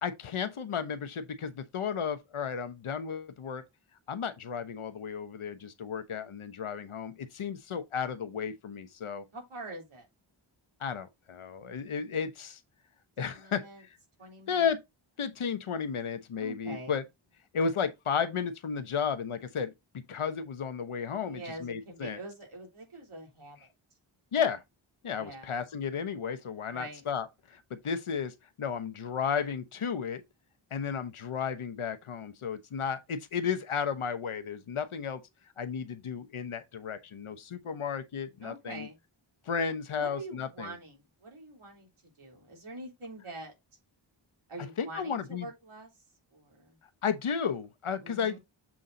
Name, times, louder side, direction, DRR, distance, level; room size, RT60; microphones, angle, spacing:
voice 1, 0.0-3.6 4.1-9.2 10.8-12.6 13.2-13.6 14.5-14.8 15.2-17.0 17.5-22.2 24.3-24.6 25.0-30.2 30.7-35.2 35.6-38.9 39.5-40.7 44.8-45.5 47.0-48.4, left 6 dB, 85° left, 1.0 m, -33 dB
voice 2, 9.3-10.1 13.2-13.8 14.2-14.7 16.4-17.0 21.2-23.7 25.1-25.6 26.7-27.0 38.4-39.0 39.9-43.5 44.5-45.9 46.3-46.8 48.0-48.4, right 2 dB, 85° right, 3.5 m, -45 dB
7.5 x 3.8 x 4.0 m
wide cardioid pair, 85°, 49 cm